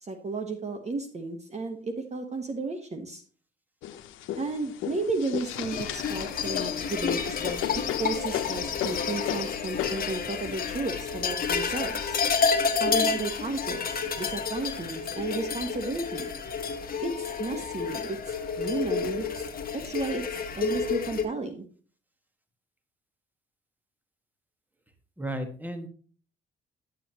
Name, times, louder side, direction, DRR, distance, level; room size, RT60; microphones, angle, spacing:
voice 1, 0.0-3.2 4.4-7.6 8.0-12.2 12.8-16.3 17.0-19.3 19.7-21.7, right 3 dB, 35° right, 5 dB, 1.3 m, -33 dB
sound 1, 3.8-14.1 14.7-15.7 16.1-16.2 16.5-17.2 17.9-18.0 18.6-19.1, left 11 dB, 90° left, 0.8 m, -36 dB
sound 2, 5.5-21.2, left 5 dB, 45° left, 1.3 m, -30 dB
voice 2, 25.2-25.9, right 1 dB, 10° right, 7 dB, 1.6 m, -33 dB
10.5 x 7.5 x 3.0 m, 0.41 s
cardioid pair, 90°, 20 cm